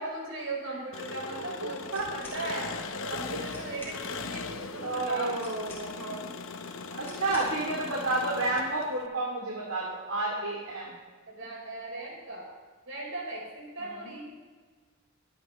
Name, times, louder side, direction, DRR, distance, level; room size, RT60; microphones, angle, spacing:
voice 1, 0.0-5.6 6.0-6.4 7.0-7.3 11.3-12.5 12.9-14.3, right 2 dB, 60° right, -2 dB, 4.4 m, -38 dB
Engine, 0.9-9.1, left 4 dB, 60° left, 0.9 m, -39 dB
voice 2, 1.6-2.1 4.8-6.2 6.9-10.9 13.8-14.1, right 2 dB, 75° right, -3 dB, 2.6 m, -31 dB
sound 1, 1.9-2.4 3.2-3.3 3.5-4.0 5.4-6.1 7.0-7.6, left 2 dB, 10° left, 3.7 m, -48 dB
23.0 x 9.6 x 3.1 m, 1.5 s
head